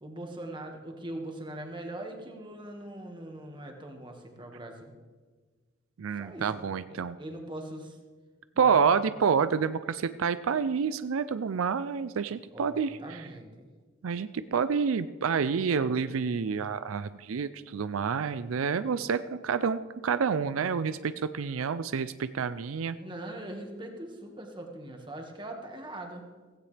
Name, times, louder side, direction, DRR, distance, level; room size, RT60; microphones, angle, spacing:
voice 1, 0.0-4.9 6.2-8.0 8.6-9.0 12.5-13.7 22.9-26.3, right 1 dB, 25° right, 2 dB, 1.7 m, -41 dB
voice 2, 6.0-7.2 8.6-13.2 14.0-23.0, right 6 dB, 90° right, 13 dB, 0.4 m, -28 dB
16.0 x 15.5 x 3.3 m, 1.4 s
head